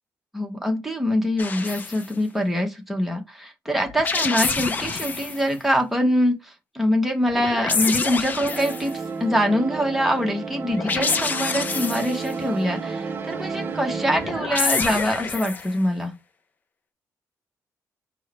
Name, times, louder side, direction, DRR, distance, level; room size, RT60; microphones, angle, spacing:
voice 1, 0.3-8.9 9.2-16.1, equal, 5° right, 1.1 m, -24 dB
sound 1, 1.4-2.1 3.9-5.4 7.3-9.0 10.7-12.3 14.1-15.8, left 4 dB, 30° left, 0.5 m, -27 dB
sound 2, 8.2-14.5, right 5 dB, 35° right, 0.7 m, -32 dB
4.7 x 2.2 x 4.3 m
cardioid pair, 160°, 6 cm